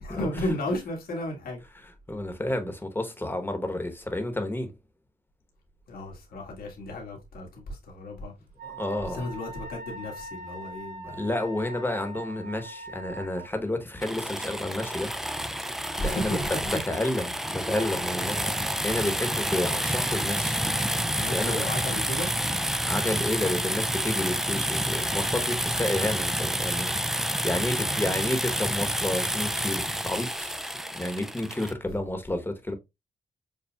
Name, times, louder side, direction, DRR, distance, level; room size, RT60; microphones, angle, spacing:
voice 1, 0.0-1.6 5.9-8.3 9.0-11.2 16.0-16.5 21.2-22.3 27.7-28.4 31.9-32.0, left 1 dB, 80° left, 1.7 m, -34 dB
voice 2, 2.1-4.7 8.6-9.3 11.1-15.1 16.0-16.4 16.7-20.6 21.3-21.7 22.8-30.5 30.9-32.7, left 1 dB, 15° left, 1.1 m, -30 dB
Wind instrument woodwind instrument, 8.6-13.5, equal, 85° right, 0.9 m, -41 dB
sound 1, 14.0-31.7, equal, 5° right, 0.4 m, -29 dB
7.0 x 2.3 x 2.3 m
cardioid pair, 80°, 15 cm